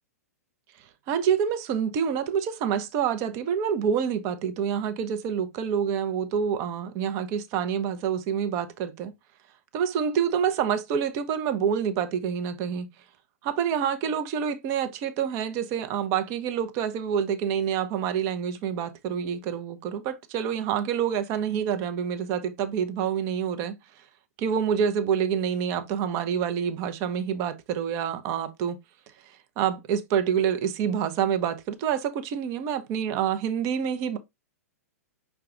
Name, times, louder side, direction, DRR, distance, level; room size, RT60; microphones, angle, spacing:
voice 1, 1.1-9.1 9.7-12.9 13.4-23.7 24.4-28.8 29.6-34.2, right 8 dB, 35° right, 0.7 m, -27 dB
5.6 x 2.3 x 3.7 m
figure-of-eight pair, 105°, 8 cm